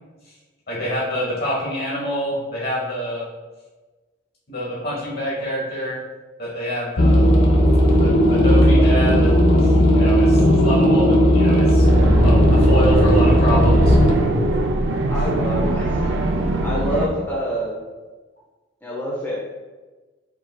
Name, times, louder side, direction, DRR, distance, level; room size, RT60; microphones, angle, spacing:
voice 1, 0.7-3.3 4.5-6.0 6.4-7.3 8.0-11.9 12.1-14.0, equal, 50° left, -4 dB, 1.2 m, -26 dB
sound 1, 7.0-14.1, equal, 65° left, 0.7 m, -15 dB
sound 2, 11.8-17.1, right 2 dB, 75° right, 0.5 m, -22 dB
sound 3, 12.1-13.4 13.7-14.6 16.1-16.2 16.8-17.0, left 1 dB, 25° right, 0.8 m, -31 dB
voice 2, 15.1-16.2 16.6-17.7 18.8-19.5, equal, 10° left, -7 dB, 0.7 m, -27 dB
4.6 x 4.1 x 2.3 m, 1.3 s
head